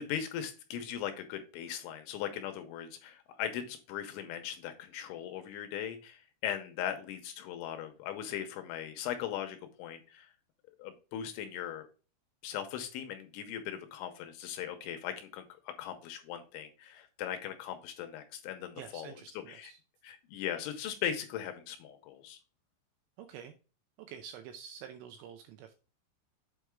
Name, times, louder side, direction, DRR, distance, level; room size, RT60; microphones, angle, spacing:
voice 1, 0.0-10.3 10.8-11.9 12.4-19.7 20.0-22.4, left 10 dB, 85° left, 7 dB, 2.9 m, -39 dB
voice 2, 18.8-19.8 23.2-23.5 24.0-25.7, right 8 dB, 85° right, 7 dB, 2.6 m, -48 dB
7.9 x 4.6 x 3.5 m, 0.34 s
omnidirectional pair, 5.8 m